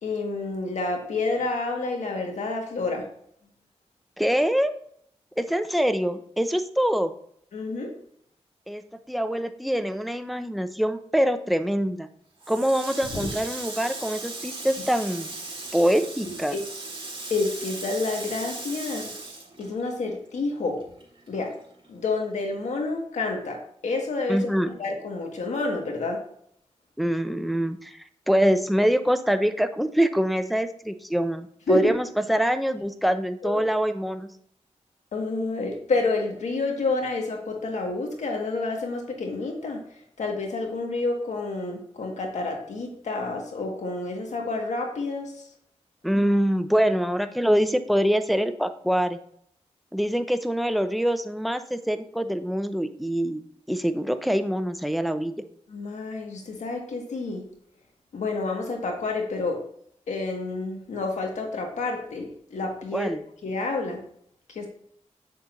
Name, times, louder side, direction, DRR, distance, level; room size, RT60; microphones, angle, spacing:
voice 1, 0.0-3.1 7.5-7.9 13.2-13.3 16.2-16.6 17.3-19.1 19.6-20.8 21.3-21.5 21.9-26.2 31.7-31.9 33.4-33.6 35.1-45.5 55.7-57.5 58.1-59.6 60.1-63.1 63.4-64.0 64.5-64.7, left 3 dB, 85° left, 2 dB, 1.6 m, -29 dB
voice 2, 4.2-4.7 5.4-7.1 8.7-8.8 9.1-12.1 12.5-15.3 15.7-16.6 24.3-24.7 27.0-34.3 46.0-49.2 49.9-53.4 53.7-55.3 62.9-63.2, equal, ahead, 9 dB, 0.6 m, -24 dB
Water tap faucet, 12.4-20.3 20.6-21.9, right 3 dB, 45° right, 2.4 m, -37 dB
7.8 x 6.8 x 2.6 m, 0.66 s
cardioid pair, 65°, 12 cm